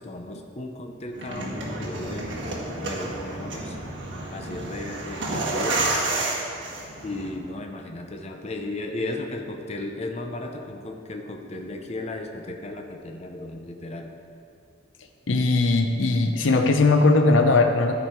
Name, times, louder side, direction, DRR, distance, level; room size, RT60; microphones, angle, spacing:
voice 1, 0.0-3.8 4.3-6.0 7.0-14.2, left 2 dB, 35° left, 3 dB, 0.7 m, -35 dB
sound 1, 1.1-7.3, right 2 dB, 70° right, 1.7 m, -30 dB
voice 2, 15.3-17.9, left 3 dB, 90° left, 6 dB, 0.7 m, -19 dB
14.5 x 5.0 x 4.5 m, 2.5 s
head